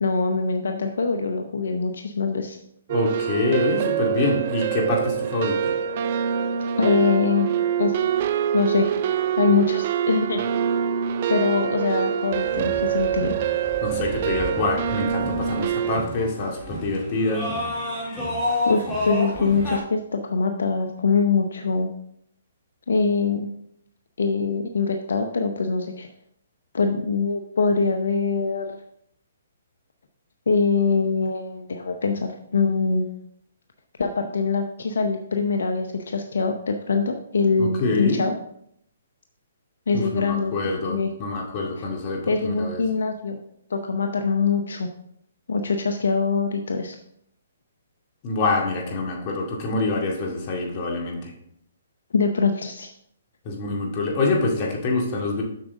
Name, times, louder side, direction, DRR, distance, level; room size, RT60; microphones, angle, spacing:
voice 1, 0.0-2.6 6.8-7.5 7.8-8.0 8.5-8.9 9.4-10.4 11.3-13.4 18.7-21.9 22.9-23.5 24.2-26.1 26.7-28.8 30.5-33.2 34.0-38.3 39.9-41.1 42.3-43.4 43.7-44.9 45.5-47.0 52.1-52.9, left 4 dB, 75° left, 5 dB, 0.7 m, -23 dB
voice 2, 2.9-5.7 13.8-17.5 37.6-38.2 39.9-42.8 48.2-51.3 53.5-55.4, left 3 dB, 40° left, 0 dB, 2.1 m, -26 dB
sound 1, 2.9-16.0, right 9 dB, 45° right, 0.5 m, -25 dB
sound 2, 12.3-19.8, left 1 dB, 10° left, 2.9 m, -31 dB
7.6 x 6.2 x 3.6 m, 0.72 s
hypercardioid pair, 140°, 0 cm